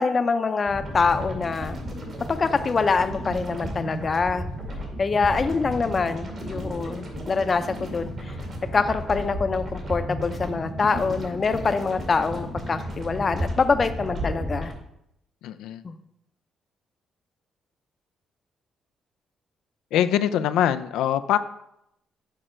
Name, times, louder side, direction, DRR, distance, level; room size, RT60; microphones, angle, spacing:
voice 1, 0.0-1.8 2.3-4.4 5.0-8.1 8.7-14.7 15.8-15.9, left 4 dB, 35° left, 10 dB, 0.6 m, -24 dB
sound 1, 0.7-14.7, equal, 55° right, 2.2 m, -33 dB
voice 2, 15.4-15.8 19.9-21.4, left 10 dB, 90° left, 11 dB, 0.3 m, -23 dB
6.6 x 5.0 x 4.4 m, 0.79 s
cardioid pair, 90°, 0 cm